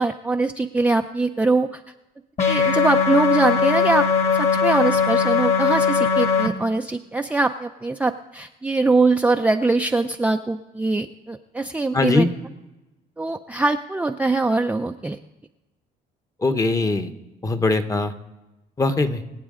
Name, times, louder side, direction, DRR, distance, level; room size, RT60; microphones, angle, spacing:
voice 1, 0.0-1.8 2.5-4.1 4.3-12.3 13.2-15.2, right 3 dB, 10° right, 4 dB, 0.4 m, -22 dB
sound 1, 2.4-6.5, left 5 dB, 40° left, 1.7 m, -20 dB
voice 2, 11.9-12.3 16.4-17.1 17.4-18.1 18.8-19.2, left 3 dB, 20° left, 8 dB, 0.9 m, -21 dB
24.0 x 8.2 x 3.7 m, 1.0 s
cardioid pair, 110°, 17 cm